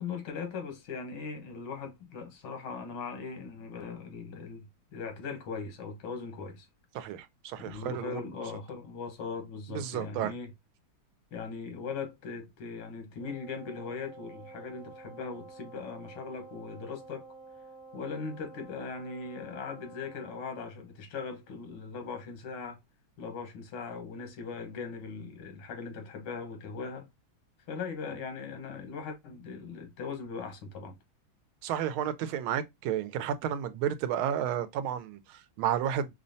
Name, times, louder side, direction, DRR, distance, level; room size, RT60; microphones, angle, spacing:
voice 1, 0.0-6.7 7.6-10.5 11.3-17.4 17.9-22.8 23.2-27.1 27.7-31.0, left 5 dB, 90° left, 2.0 m, -39 dB
voice 2, 6.9-8.2 9.7-10.3 31.6-36.1, right 10 dB, 85° right, 1.4 m, -32 dB
Wind instrument woodwind instrument, 13.2-20.5, right 3 dB, 55° left, 2.5 m, -50 dB
5.5 x 2.1 x 2.6 m
omnidirectional pair, 2.2 m